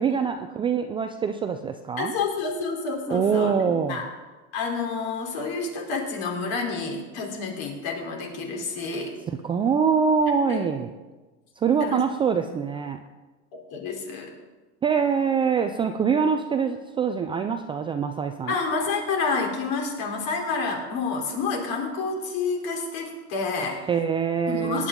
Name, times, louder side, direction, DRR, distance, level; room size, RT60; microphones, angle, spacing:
voice 1, 0.0-2.1 3.1-4.0 9.3-10.9 11.6-13.0 14.8-18.5 23.9-24.9, right 6 dB, 15° right, 6 dB, 0.3 m, -24 dB
voice 2, 2.0-4.0 4.5-9.2 10.5-10.6 11.8-12.0 13.7-14.3 18.5-23.8 24.5-24.9, left 4 dB, 55° left, 1 dB, 3.6 m, -29 dB
18.0 x 9.7 x 3.7 m, 1.2 s
supercardioid pair, 130°, 36 cm